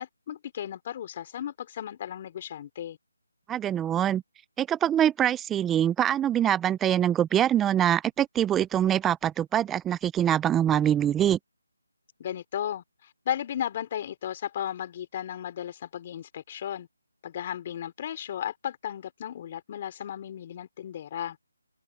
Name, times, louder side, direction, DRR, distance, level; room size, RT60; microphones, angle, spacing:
voice 1, 0.0-3.0 12.2-16.9 17.2-21.4, left 10 dB, 30° left, 3.6 m, -35 dB
voice 2, 3.5-4.2 4.6-11.4, right 10 dB, 10° right, 0.5 m, -24 dB
open air
figure-of-eight pair, 160°, 0 cm